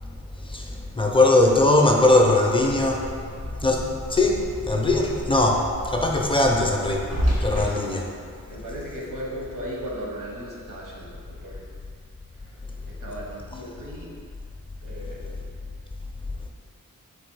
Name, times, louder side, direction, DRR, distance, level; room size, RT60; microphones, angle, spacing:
voice 1, 1.0-3.0 3.6-7.0 7.4-8.1, left 2 dB, 15° left, 0 dB, 0.4 m, -20 dB
sound 1, 2.6-7.6, equal, 90° right, 1.3 m, -31 dB
voice 2, 8.5-11.6 12.9-14.1 14.8-15.4, equal, 70° right, -3 dB, 0.9 m, -36 dB
4.1 x 2.6 x 4.6 m, 2.2 s
wide cardioid pair, 80°, 33 cm